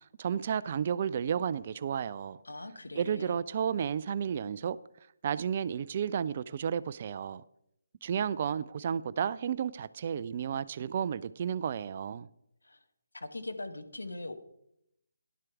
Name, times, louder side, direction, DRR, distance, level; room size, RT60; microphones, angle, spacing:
voice 1, 0.2-2.4 3.0-4.8 5.2-7.4 8.0-12.3, right 8 dB, 35° right, 0.3 m, -32 dB
voice 2, 2.4-3.4 12.6-12.8 13.1-14.3, left 2 dB, 70° left, 1.2 m, -41 dB
11.0 x 7.5 x 4.7 m
figure-of-eight pair, 145°, 0 cm